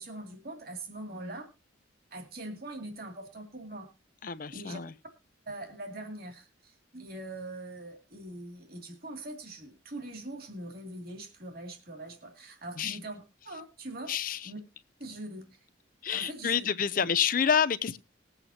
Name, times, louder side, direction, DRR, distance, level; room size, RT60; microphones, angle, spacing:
voice 1, 0.0-1.5 2.1-3.9 4.5-4.8 5.5-14.1 14.4-14.6 15.0-15.7 16.1-16.7 17.0-17.1, right 1 dB, 50° right, 2.5 m, -42 dB
voice 2, 4.2-4.9 12.8-13.0 14.1-14.5 16.0-18.0, left 7 dB, 45° left, 0.6 m, -28 dB
20.5 x 8.0 x 2.8 m
head